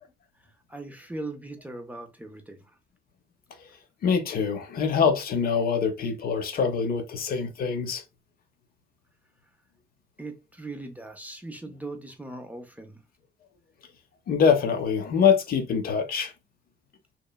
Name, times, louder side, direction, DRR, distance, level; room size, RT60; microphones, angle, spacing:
voice 1, 0.0-2.8 10.2-13.0, right 2 dB, 10° right, 0.4 m, -40 dB
voice 2, 4.0-8.0 14.3-16.3, left 6 dB, 60° left, 0.5 m, -24 dB
2.9 x 2.1 x 2.2 m
cardioid pair, 130°, 18 cm